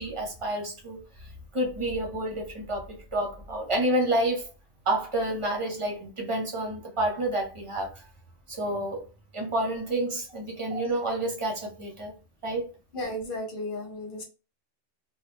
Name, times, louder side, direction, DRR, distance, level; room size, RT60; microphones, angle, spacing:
voice 1, 0.0-4.5 4.9-8.0 8.5-9.0 9.3-12.1 12.4-12.7, right 1 dB, 30° right, 0.8 m, -29 dB
voice 2, 12.9-14.2, left 1 dB, 50° left, 1.0 m, -34 dB
2.9 x 2.0 x 3.4 m
omnidirectional pair, 1.3 m